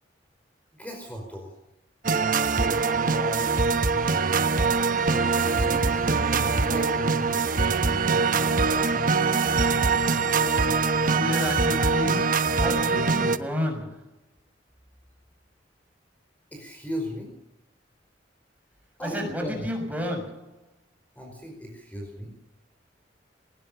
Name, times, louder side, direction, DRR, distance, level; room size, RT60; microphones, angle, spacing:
voice 1, 0.7-1.5 5.5-7.6 16.5-17.3 19.0-19.7 21.1-22.4, equal, 10° left, 1 dB, 5.1 m, -37 dB
sound 1, 2.0-13.4, right 4 dB, 50° right, 1.2 m, -23 dB
voice 2, 3.0-3.7 11.0-14.1 19.0-20.6, left 1 dB, 10° right, 2 dB, 6.6 m, -31 dB
21.0 x 19.5 x 6.9 m, 0.82 s
head